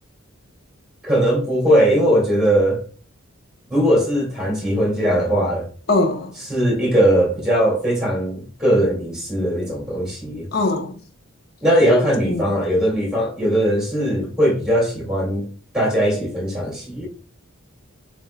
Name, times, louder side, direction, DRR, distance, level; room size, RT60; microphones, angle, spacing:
voice 1, 1.0-2.8 3.7-5.7 6.5-10.5 11.6-15.5 15.7-17.1, equal, 5° right, 2.1 m, -19 dB
voice 2, 5.9-6.3 10.5-11.0 11.9-12.5, left 2 dB, 50° left, 0.8 m, -22 dB
7.0 x 3.0 x 2.3 m
head